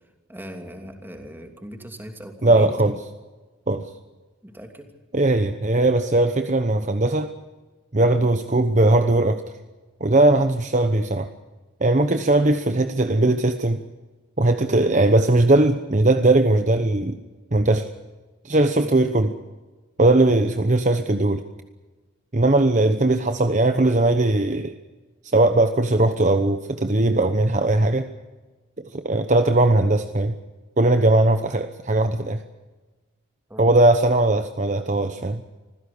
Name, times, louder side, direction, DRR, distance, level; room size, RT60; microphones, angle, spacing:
voice 1, 0.3-3.0 4.4-4.9 12.1-12.3 18.8-18.9 33.5-33.7, equal, 10° right, 4 dB, 2.9 m, -39 dB
voice 2, 2.4-2.9 3.7-3.9 5.1-7.3 7.9-9.4 10.0-11.3 11.8-13.8 14.4-17.2 17.5-17.9 18.4-19.3 20.0-21.4 22.3-24.7 25.3-28.1 28.8-30.3 30.8-32.4 33.6-35.4, right 2 dB, 35° right, 8 dB, 1.0 m, -19 dB
25.5 x 16.0 x 8.5 m, 1.2 s
head